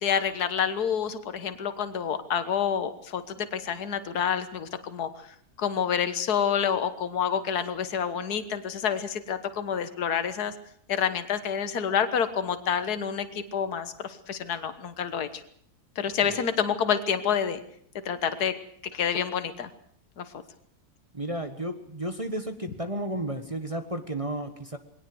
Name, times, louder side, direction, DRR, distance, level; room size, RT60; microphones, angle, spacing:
voice 1, 0.0-10.5 10.9-15.4 16.0-17.6 18.1-18.6 18.9-19.7 20.2-20.3, left 8 dB, 70° left, 10 dB, 1.9 m, -28 dB
voice 2, 21.1-24.8, right 1 dB, 20° right, 6 dB, 1.4 m, -33 dB
21.5 x 18.0 x 7.8 m, 0.63 s
omnidirectional pair, 1.7 m